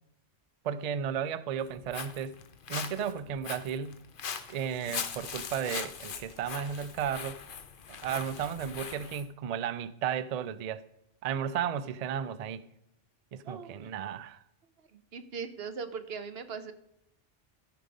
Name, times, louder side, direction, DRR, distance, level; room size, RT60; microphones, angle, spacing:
voice 1, 0.6-2.4 2.7-4.0 4.5-7.4 8.0-10.8 11.2-12.7 13.3-14.4, right 8 dB, 80° right, 0.3 m, -34 dB
Walk footsteps, 1.6-9.2, left 7 dB, 50° left, 0.8 m, -41 dB
voice 2, 13.4-13.9 14.8-16.7, right 5 dB, 60° right, 1.1 m, -40 dB
13.5 x 5.2 x 5.1 m
omnidirectional pair, 1.2 m